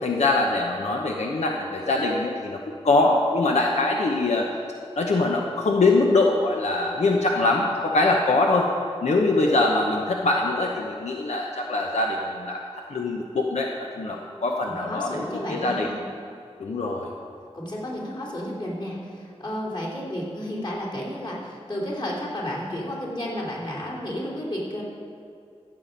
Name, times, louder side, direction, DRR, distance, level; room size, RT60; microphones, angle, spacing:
voice 1, 0.0-4.5 5.0-8.7 9.0-12.6 12.9-13.7 14.0-15.9 16.6-17.1, left 2 dB, 85° left, 0 dB, 0.9 m, -23 dB
voice 2, 14.6-16.0 17.5-24.8, left 1 dB, 45° left, -4 dB, 3.2 m, -32 dB
14.5 x 7.6 x 5.3 m, 2.5 s
wide cardioid pair, 85°, 11 cm